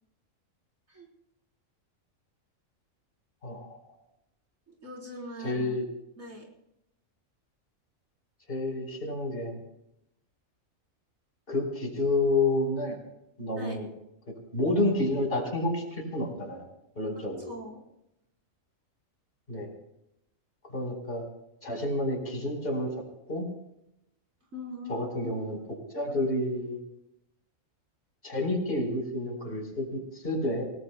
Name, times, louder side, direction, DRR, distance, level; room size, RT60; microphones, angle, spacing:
voice 1, 3.4-3.8 5.4-5.8 8.5-9.6 11.5-13.0 13.4-13.9 14.5-16.7 17.0-17.5 19.5-19.7 20.7-21.2 21.6-22.9 23.3-23.4 24.9-25.6 25.9-26.8 28.2-30.6, left 2 dB, 45° left, 1 dB, 4.8 m, -29 dB
voice 2, 4.7-5.8 6.2-6.5 13.6-13.8 17.2-17.8 24.5-25.3, left 1 dB, 75° right, -1 dB, 4.6 m, -42 dB
28.0 x 18.0 x 2.3 m, 0.83 s
omnidirectional pair, 1.4 m